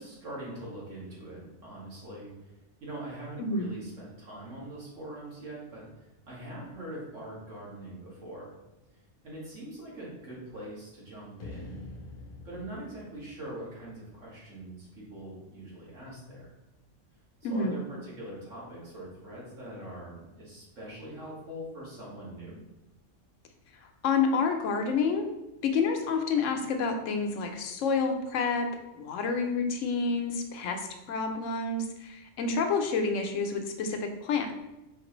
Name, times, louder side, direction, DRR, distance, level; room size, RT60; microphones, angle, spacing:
voice 1, 0.0-2.5 2.8-8.5 9.2-11.8 12.4-16.5 17.5-22.6, right 1 dB, 85° right, -6 dB, 1.9 m, -43 dB
sound 1, 11.4-14.6, left 2 dB, 55° left, 0.6 m, -47 dB
voice 2, 17.4-17.7 24.0-25.3 25.6-28.7 28.9-34.5, left 4 dB, 85° left, 5 dB, 1.0 m, -29 dB
4.5 x 3.2 x 3.0 m, 0.97 s
omnidirectional pair, 1.3 m